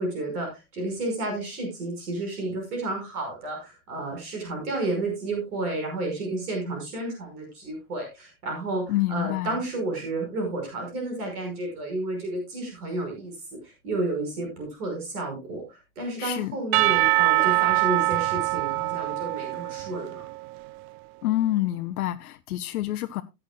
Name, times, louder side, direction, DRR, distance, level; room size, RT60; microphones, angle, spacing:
voice 1, 0.0-13.4 13.6-20.2, right 2 dB, 75° right, 5.3 m, -31 dB
voice 2, 8.9-9.6 16.2-16.6 21.2-23.2, left 14 dB, 70° left, 0.8 m, -27 dB
Percussion / Church bell, 16.7-20.7, right 21 dB, 45° right, 0.5 m, -24 dB
16.5 x 9.3 x 2.3 m
figure-of-eight pair, 85°, 46 cm